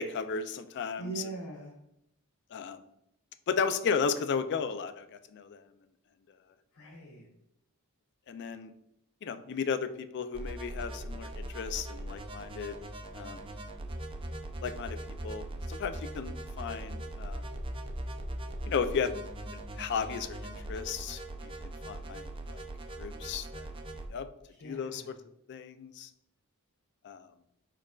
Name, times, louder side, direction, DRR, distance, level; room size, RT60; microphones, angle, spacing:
voice 1, 0.0-1.1 2.5-2.8 3.5-5.6 8.3-8.7 9.2-12.8 13.1-13.5 14.6-15.0 15.2-17.5 18.7-19.1 19.8-22.6 23.0-23.7 24.1-24.3 24.6-25.1 25.5-26.1 27.0-27.3, left 6 dB, 55° left, 11 dB, 0.3 m, -34 dB
voice 2, 1.0-1.8 6.7-7.3 24.5-25.1, right 3 dB, 75° left, 0 dB, 0.7 m, -42 dB
sound 1, 10.3-24.1, right 1 dB, 25° right, 0.4 m, -40 dB
4.9 x 4.5 x 2.3 m, 0.80 s
head